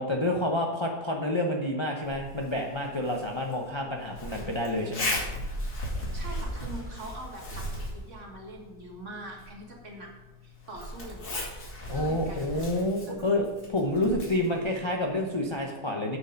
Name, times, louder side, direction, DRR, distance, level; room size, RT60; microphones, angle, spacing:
voice 1, 0.0-5.2 11.9-16.2, left 1 dB, 30° left, 0 dB, 0.5 m, -29 dB
Zipper (clothing), 2.0-15.6, left 1 dB, 65° left, 2.8 m, -38 dB
voice 2, 6.1-10.1 10.4-11.5 11.9-12.6 13.1-13.2, right 1 dB, 45° right, 0 dB, 1.9 m, -43 dB
8.7 x 6.9 x 5.2 m, 1.1 s
omnidirectional pair, 1.8 m